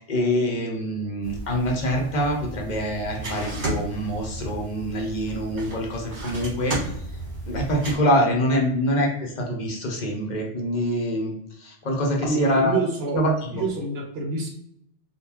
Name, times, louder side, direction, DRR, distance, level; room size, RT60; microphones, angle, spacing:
voice 1, 0.0-6.9 7.5-12.8 13.1-13.6, equal, 45° left, 0 dB, 0.8 m, -25 dB
sound 1, 1.2-8.0, right 1 dB, 45° right, 1.6 m, -33 dB
voice 2, 12.2-13.2 13.6-14.5, right 3 dB, 60° right, 1 dB, 0.8 m, -26 dB
3.6 x 2.4 x 2.9 m, 0.73 s
omnidirectional pair, 1.3 m